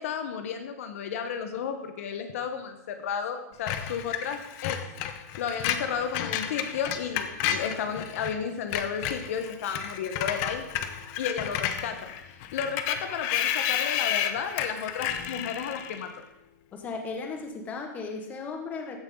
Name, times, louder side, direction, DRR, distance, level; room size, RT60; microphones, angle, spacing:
voice 1, 0.0-4.8 5.1-10.6 11.2-16.2, left 7 dB, 55° left, 7 dB, 1.3 m, -33 dB
Screech, 3.7-8.3 8.6-16.1, left 9 dB, 35° left, 0.9 m, -31 dB
voice 2, 16.7-19.0, left 4 dB, 15° left, 5 dB, 1.5 m, -36 dB
15.5 x 11.0 x 3.9 m, 0.90 s
supercardioid pair, 165°, 9 cm